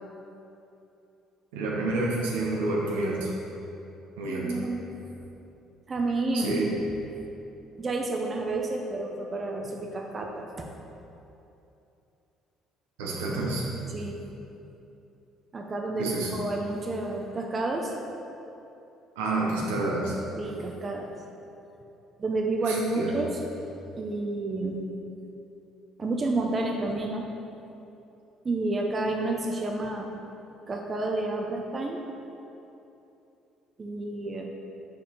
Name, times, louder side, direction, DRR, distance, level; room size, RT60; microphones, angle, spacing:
voice 1, 1.5-3.3 4.2-4.6 6.3-6.7 13.0-13.7 16.0-16.3 19.2-20.1 22.6-23.2, right 2 dB, 85° right, -3 dB, 1.0 m, -28 dB
voice 2, 4.3-4.8 5.9-6.6 7.8-10.8 13.9-14.2 15.5-17.9 20.4-21.2 22.2-23.4 24.0-24.9 26.0-27.3 28.4-30.1 30.7-32.0 33.8-34.5, right 2 dB, 35° right, 1 dB, 0.7 m, -30 dB
5.3 x 4.3 x 5.3 m, 2.9 s
hypercardioid pair, 55°, 0 cm